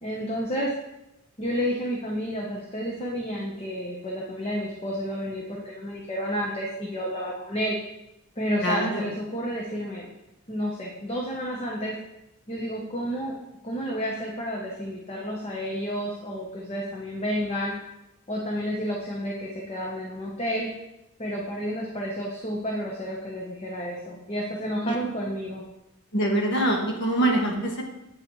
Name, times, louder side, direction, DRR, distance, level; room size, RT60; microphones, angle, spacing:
voice 1, 0.0-0.7 1.4-7.8 8.4-10.1 10.5-12.0 12.5-13.4 13.6-17.7 18.3-20.7 21.2-25.6, equal, 30° left, -2 dB, 0.8 m, -30 dB
voice 2, 8.6-9.0 24.8-24.9 26.1-27.8, right 1 dB, 55° left, -1 dB, 1.4 m, -24 dB
8.5 x 5.6 x 3.1 m, 0.91 s
head